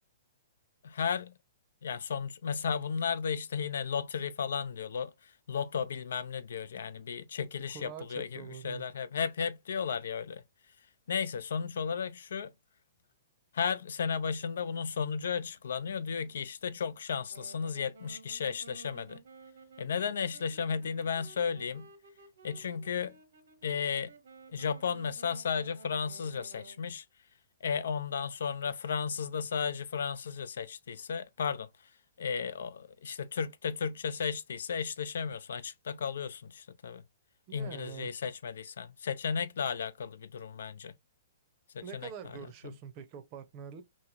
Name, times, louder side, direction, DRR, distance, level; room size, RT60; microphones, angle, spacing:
voice 1, 0.8-1.4 1.8-10.4 11.1-12.5 13.5-19.2 19.8-21.9 22.4-23.2 23.6-24.1 24.5-27.1 27.6-31.9 32.2-37.0 37.5-40.9 41.7-42.8, left 6 dB, 75° left, 0.4 m, -34 dB
voice 2, 7.7-8.8 37.5-38.1 41.8-43.8, right 8 dB, 30° right, 0.6 m, -45 dB
Wind instrument woodwind instrument, 17.3-26.8, right 4 dB, 80° right, 1.0 m, -54 dB
3.0 x 2.5 x 2.4 m
hypercardioid pair, 160°, 0 cm